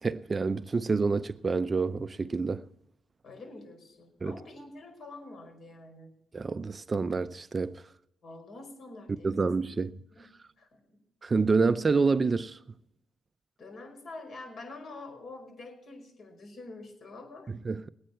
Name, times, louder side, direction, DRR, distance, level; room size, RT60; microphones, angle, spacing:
voice 1, 0.0-2.6 4.2-4.3 6.3-7.8 9.2-9.9 11.2-12.6 17.5-17.9, right 4 dB, 30° right, 0.5 m, -27 dB
voice 2, 3.2-6.1 8.2-9.5 10.1-11.0 13.6-17.5, left 2 dB, 55° left, 5.2 m, -46 dB
20.5 x 9.2 x 4.5 m
cardioid pair, 90°, 0 cm